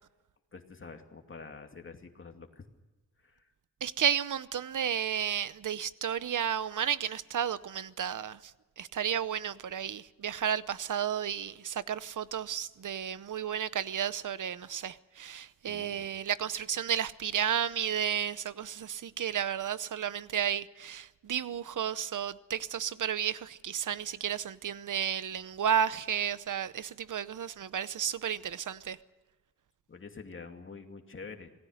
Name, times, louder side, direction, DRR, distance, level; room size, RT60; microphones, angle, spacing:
voice 1, 0.5-2.6 3.2-3.4 15.6-16.1 29.9-31.5, left 4 dB, 40° left, 2.5 m, -47 dB
voice 2, 3.8-8.4 8.8-29.0, right 9 dB, 70° right, 0.8 m, -32 dB
27.0 x 19.0 x 6.5 m
wide cardioid pair, 150°, 32 cm